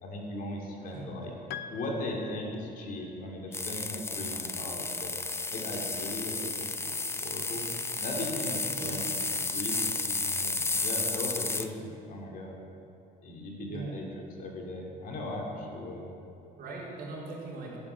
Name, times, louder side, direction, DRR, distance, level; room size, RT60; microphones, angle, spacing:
voice 1, 0.0-1.3 1.7-5.1 5.5-6.9 7.2-7.7 8.0-9.2 9.5-12.6 13.2-14.0 14.4-16.1, left 1 dB, 55° left, -1 dB, 2.8 m, -38 dB
voice 2, 0.8-1.2 8.8-9.0 13.7-14.0 16.6-17.8, right 3 dB, 65° right, -4 dB, 3.8 m, -40 dB
Piano, 1.5-3.2, left 9 dB, 75° left, 0.6 m, -44 dB
sound 1, 3.5-11.7, left 3 dB, 15° left, 0.6 m, -32 dB
12.0 x 8.5 x 7.5 m, 2.6 s
cardioid pair, 110°, 17 cm